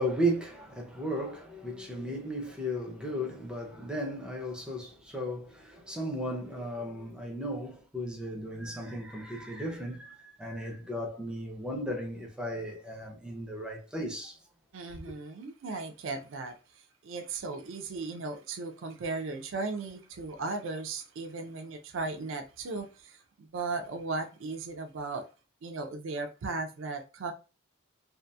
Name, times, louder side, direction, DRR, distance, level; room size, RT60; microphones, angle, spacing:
voice 1, 0.0-14.4, equal, 5° right, 0.5 m, -35 dB
voice 2, 14.7-16.6 17.0-25.2 25.6-27.3, right 3 dB, 65° right, 0.4 m, -36 dB
2.7 x 2.4 x 2.3 m
head